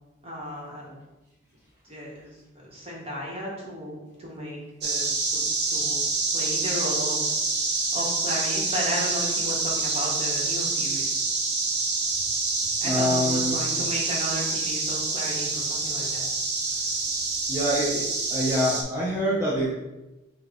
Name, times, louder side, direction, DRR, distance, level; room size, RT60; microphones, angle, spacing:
voice 1, 0.2-0.9 1.8-5.4 5.7-6.1 6.3-7.3 7.9-11.2 12.8-16.3, equal, 30° right, -4 dB, 1.1 m, -34 dB
sound 1, 4.8-18.8, right 3 dB, 55° right, 0.6 m, -27 dB
voice 2, 12.8-13.5 17.5-18.0 18.3-19.7, equal, 15° right, -8 dB, 0.7 m, -25 dB
5.5 x 2.3 x 3.6 m, 1.0 s
head